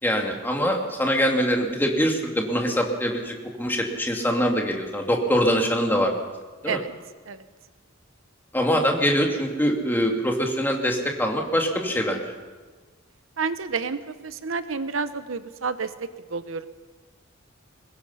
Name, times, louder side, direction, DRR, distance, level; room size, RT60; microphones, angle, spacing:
voice 1, 0.0-6.1 6.6-6.8 8.5-12.2, equal, 10° left, 1 dB, 2.4 m, -23 dB
voice 2, 13.4-15.9 16.3-16.7, right 5 dB, 70° right, 12 dB, 0.9 m, -29 dB
23.0 x 20.5 x 5.7 m, 1.4 s
head